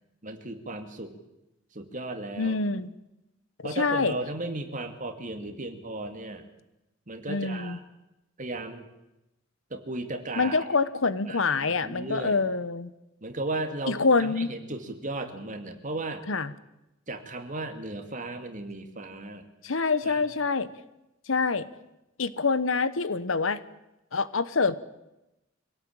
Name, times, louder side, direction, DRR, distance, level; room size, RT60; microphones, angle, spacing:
voice 1, 0.2-1.2 1.7-2.6 3.6-6.5 7.1-7.8 8.4-8.9 9.7-10.6 11.3-12.4 13.2-16.2 17.1-19.4 20.0-20.2, right 2 dB, 40° right, 7 dB, 2.5 m, -35 dB
voice 2, 2.4-2.9 3.6-4.1 7.3-7.8 10.4-12.9 13.9-14.5 16.3-16.5 19.6-20.7 21.3-21.7 22.2-23.6 24.1-24.8, left 4 dB, 85° left, 16 dB, 1.1 m, -26 dB
24.5 x 17.0 x 8.8 m, 0.93 s
head